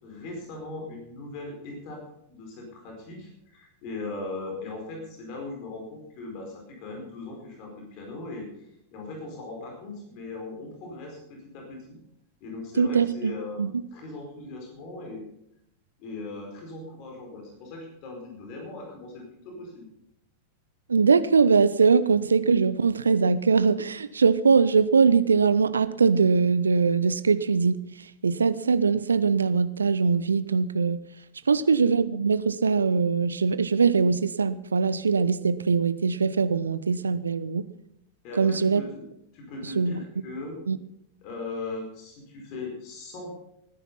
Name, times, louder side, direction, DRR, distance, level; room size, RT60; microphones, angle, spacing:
voice 1, 0.0-2.0 2.3-12.0 12.4-13.6 13.9-15.2 16.0-19.9 31.4-31.7 38.2-39.0 39.3-40.6 41.2-43.3, left 2 dB, 45° left, 1 dB, 4.8 m, -39 dB
voice 2, 12.8-13.3 13.6-13.7 20.9-27.8 28.2-31.0 31.5-37.6 38.4-38.8 39.8-40.0 40.7-40.8, right 5 dB, 75° right, 16 dB, 0.7 m, -22 dB
19.0 x 10.5 x 5.5 m, 0.77 s
figure-of-eight pair, 90°, 0 cm